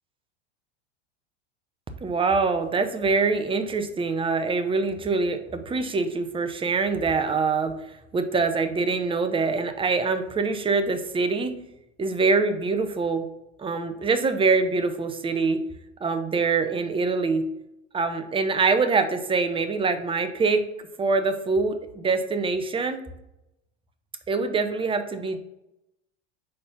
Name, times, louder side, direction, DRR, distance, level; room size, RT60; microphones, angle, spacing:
voice 1, 2.0-11.5 12.0-13.3 13.6-15.6 16.0-17.5 17.9-20.6 21.0-23.0 24.3-25.4, right 4 dB, 15° right, 8 dB, 0.7 m, -24 dB
5.4 x 4.2 x 5.7 m, 0.89 s
supercardioid pair, 110°, 34 cm